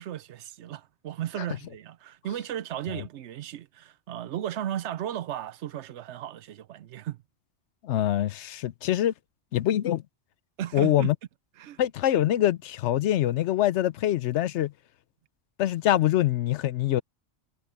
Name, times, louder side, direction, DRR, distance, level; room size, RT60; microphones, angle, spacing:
voice 1, 0.0-7.2 10.6-11.1 11.6-11.8, right 11 dB, 80° right, 0.9 m, -35 dB
voice 2, 7.8-9.1 9.5-10.0 10.7-11.1 11.8-14.7 15.6-17.0, left 13 dB, 80° left, 0.9 m, -24 dB
omnidirectional pair, 1.2 m